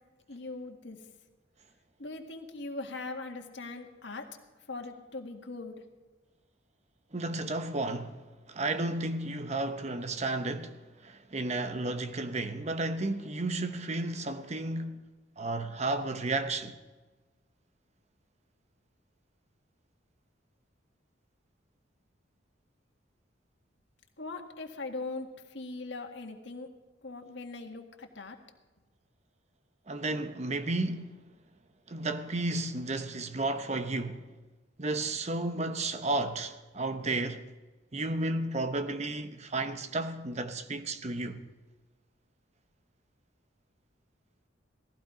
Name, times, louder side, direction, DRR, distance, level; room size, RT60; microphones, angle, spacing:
voice 1, 0.3-1.0 2.0-4.3 4.7-5.8 24.2-26.7 27.0-28.4, left 3 dB, 65° left, 1.8 m, -40 dB
voice 2, 7.1-15.0 15.4-16.8 29.9-31.3 31.9-34.3 34.8-37.5 37.9-41.5, right 2 dB, 35° right, 0.9 m, -33 dB
18.0 x 15.0 x 5.0 m
head